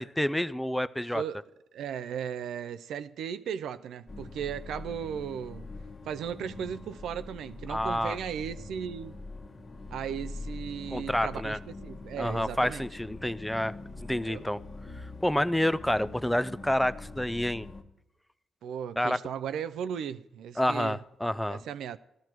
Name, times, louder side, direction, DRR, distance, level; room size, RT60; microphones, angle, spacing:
voice 1, 0.0-1.2 7.7-8.2 10.9-11.6 12.2-13.7 14.0-14.6 15.2-17.7 19.0-19.2 20.6-21.6, left 1 dB, 5° left, 0.4 m, -28 dB
voice 2, 1.7-5.7 6.1-9.1 9.9-12.8 14.2-14.4 18.6-21.0 21.5-22.0, right 8 dB, 85° right, 0.4 m, -36 dB
sound 1, 4.1-17.8, left 2 dB, 45° left, 1.3 m, -43 dB
17.5 x 13.0 x 3.0 m
cardioid pair, 65°, 0 cm